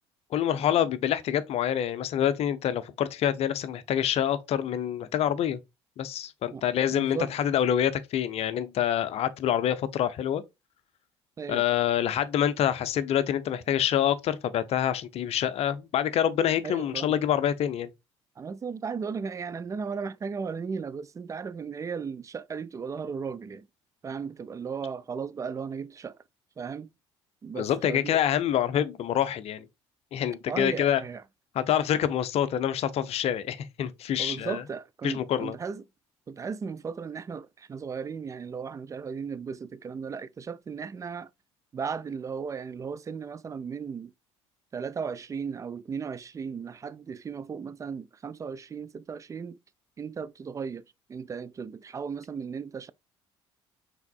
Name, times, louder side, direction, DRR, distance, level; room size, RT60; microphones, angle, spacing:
voice 1, 0.3-5.6 6.0-10.4 11.5-17.9 27.5-29.7 30.1-31.0 31.5-34.6 35.0-35.6, left 10 dB, 45° left, 0.6 m, -26 dB
voice 2, 6.9-7.3 11.4-11.6 16.6-17.1 18.4-23.7 24.0-26.2 26.6-26.9 27.4-28.1 30.5-31.2 34.2-35.8 36.3-41.3 41.7-44.1 44.7-49.6 50.0-50.8 51.1-52.9, right 6 dB, 20° right, 0.3 m, -36 dB
5.7 x 3.5 x 2.3 m
figure-of-eight pair, 55°, 15 cm